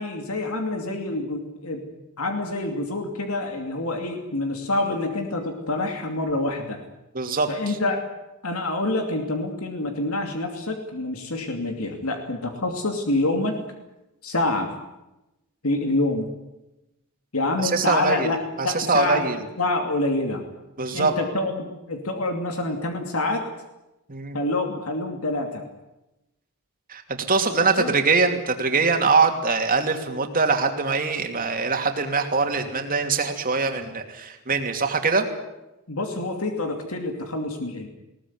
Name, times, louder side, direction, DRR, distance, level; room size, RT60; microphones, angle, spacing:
voice 1, 0.0-1.8 2.2-6.8 7.5-8.0 8.4-13.6 14.2-14.7 15.6-16.3 17.3-18.4 18.6-19.2 19.6-20.4 20.9-23.4 24.3-25.6 27.5-27.9 35.9-37.9, left 2 dB, 80° left, 4 dB, 2.7 m, -26 dB
voice 2, 7.1-7.8 17.6-18.3 18.6-19.4 20.8-21.1 24.1-24.4 26.9-27.0 27.3-35.3, right 4 dB, 40° right, 5 dB, 2.9 m, -23 dB
21.0 x 18.5 x 9.5 m, 0.95 s
head